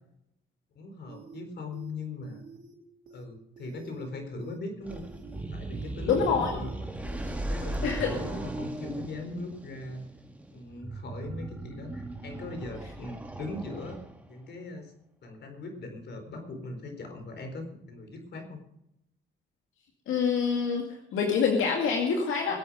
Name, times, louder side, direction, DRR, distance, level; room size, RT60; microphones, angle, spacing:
voice 1, 0.7-2.4 3.1-5.1 5.5-6.7 7.1-10.0 10.5-14.0 14.3-14.9 15.2-18.6, left 2 dB, 60° left, 5 dB, 4.3 m, -39 dB
sound 1, 1.1-1.4 1.7-1.9 2.2-2.7 3.1-3.2 3.6-4.1 4.4-4.6 4.9-5.4 5.7-5.9 6.2-6.7 7.1-7.2, right 7 dB, 75° right, 3.8 m, -48 dB
sound 2, 4.8-14.4, right 2 dB, 5° right, 2.1 m, -38 dB
voice 2, 6.1-6.5 7.8-8.1 20.1-20.9 21.1-22.6, left 6 dB, 85° left, 1 dB, 2.2 m, -26 dB
21.5 x 8.6 x 5.1 m, 0.81 s
cardioid pair, 90°, 20 cm